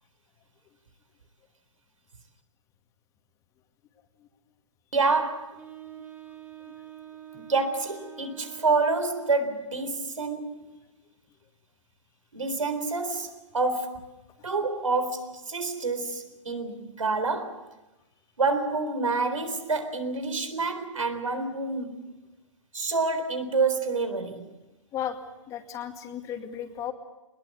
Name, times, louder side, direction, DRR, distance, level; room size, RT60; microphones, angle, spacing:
voice 1, 4.9-5.6 7.4-10.7 12.3-14.1 14.4-17.7 18.4-22.0 22.7-24.5, right 3 dB, 90° right, 4.0 m, -28 dB
Wind instrument woodwind instrument, 5.6-9.7, right 10 dB, 15° right, 2.9 m, -46 dB
voice 2, 25.5-26.9, left 10 dB, 20° left, 2.2 m, -34 dB
22.5 x 20.5 x 8.5 m
hypercardioid pair, 145°, 17 cm